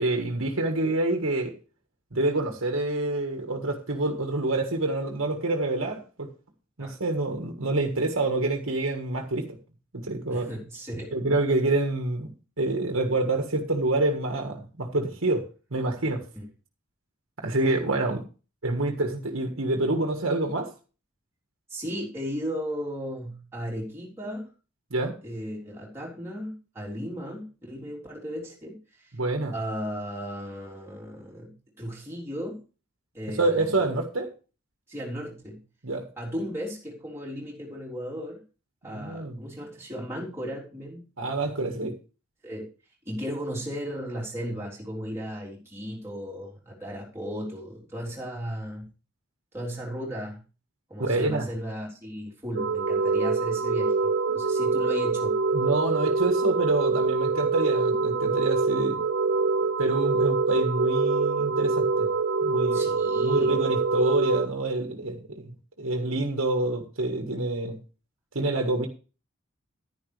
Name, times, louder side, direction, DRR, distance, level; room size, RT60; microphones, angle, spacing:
voice 1, 0.0-1.5 2.1-6.3 6.8-9.6 9.9-10.5 11.1-16.2 17.4-18.2 18.6-20.7 24.9-25.2 29.1-29.5 33.4-34.3 35.8-36.1 38.9-39.4 41.2-42.0 51.0-51.5 54.3-54.4 55.5-59.0 59.8-62.1 62.4-62.8 63.2-65.5 65.8-67.8 68.4-68.9, right 2 dB, 80° right, 1.7 m, -27 dB
voice 2, 10.3-11.1 16.3-16.4 21.7-24.5 25.2-29.1 29.5-32.6 33.1-33.7 34.9-35.6 36.1-38.4 38.8-41.0 42.4-42.7 43.1-48.9 49.5-50.4 50.9-55.4 62.7-63.6, equal, 15° right, 3.6 m, -35 dB
sound 1, 52.6-64.5, right 4 dB, 55° right, 0.5 m, -25 dB
11.0 x 10.5 x 3.3 m
head